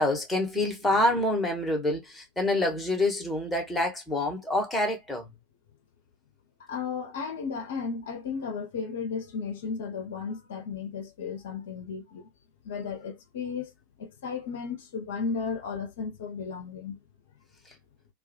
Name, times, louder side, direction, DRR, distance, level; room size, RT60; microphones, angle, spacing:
voice 1, 0.0-5.3, left 1 dB, 5° left, 0.9 m, -27 dB
voice 2, 6.7-12.3 12.6-13.7 14.0-17.0, left 5 dB, 60° left, 0.5 m, -34 dB
2.2 x 2.1 x 2.7 m
figure-of-eight pair, 90°, 0 cm